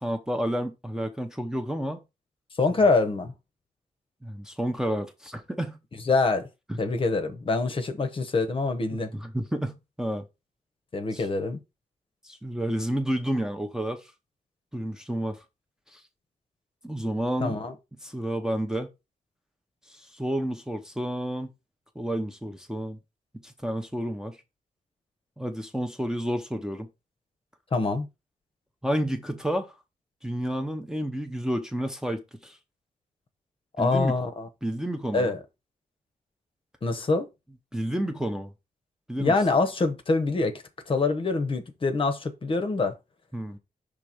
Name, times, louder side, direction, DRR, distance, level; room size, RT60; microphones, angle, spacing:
voice 1, 0.0-2.0 4.2-5.8 6.7-6.8 8.9-10.2 11.1-11.3 12.2-14.0 14.7-15.4 15.9-16.0 16.8-17.6 18.0-18.9 19.9-21.5 22.0-23.0 23.4-24.4 25.4-26.9 28.8-29.7 30.2-32.6 33.8-34.2 34.6-35.3 37.7-38.5 39.1-39.3 43.3-43.6, right 1 dB, 5° right, 0.8 m, -30 dB
voice 2, 2.6-3.3 6.0-6.5 6.8-9.1 10.9-11.6 17.4-17.7 27.7-28.1 33.8-34.5 35.1-35.4 36.8-37.3 39.2-42.9, left 3 dB, 35° left, 0.9 m, -25 dB
5.8 x 3.4 x 4.9 m
wide cardioid pair, 145°, 15 cm